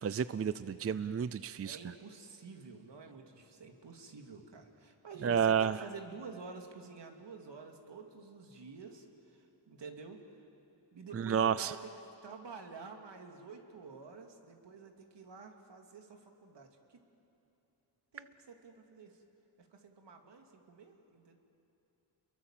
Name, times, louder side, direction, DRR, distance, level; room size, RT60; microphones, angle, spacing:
voice 1, 0.0-1.8 5.2-5.8 11.1-11.7, right 7 dB, 35° right, 15 dB, 0.5 m, -30 dB
voice 2, 1.6-10.2 10.9-11.9 12.2-17.0 18.1-19.2 19.6-21.4, right 4 dB, 70° right, 3 dB, 2.7 m, -50 dB
29.5 x 22.5 x 7.5 m, 2.9 s
wide cardioid pair, 100°, 44 cm